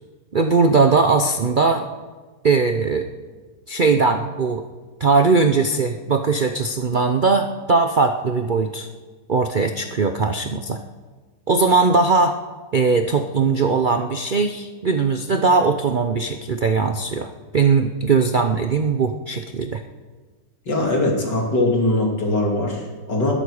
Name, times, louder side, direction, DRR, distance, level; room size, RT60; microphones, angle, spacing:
voice 1, 0.3-1.9 2.4-3.1 3.7-4.6 5.0-8.9 9.3-10.8 11.5-12.4 12.7-19.8, right 4 dB, 55° right, 6 dB, 0.5 m, -19 dB
voice 2, 20.7-23.3, left 1 dB, 85° left, -1 dB, 3.3 m, -21 dB
21.0 x 11.0 x 4.9 m, 1.4 s
omnidirectional pair, 1.8 m